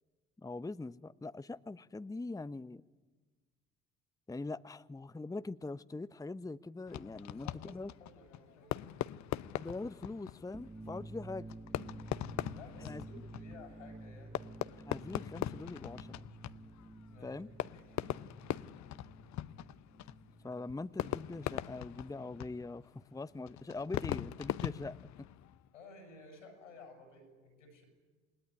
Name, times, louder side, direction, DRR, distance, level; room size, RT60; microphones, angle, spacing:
voice 1, 0.4-2.8 4.3-7.9 9.6-11.5 12.8-13.0 14.8-16.2 17.2-17.5 20.4-25.0, left 3 dB, 10° left, 13 dB, 0.8 m, -42 dB
Fireworks, 6.9-25.7, left 13 dB, 50° left, 0.8 m, -42 dB
voice 2, 7.2-7.7 8.0-8.7 12.5-14.9 17.1-17.4 17.7-18.7 25.7-27.8, left 3 dB, 85° left, 5 dB, 7.2 m, -55 dB
sound 1, 10.5-22.0, right 2 dB, 15° right, 1.6 m, -51 dB
28.0 x 20.5 x 9.7 m, 1.4 s
figure-of-eight pair, 45°, 36 cm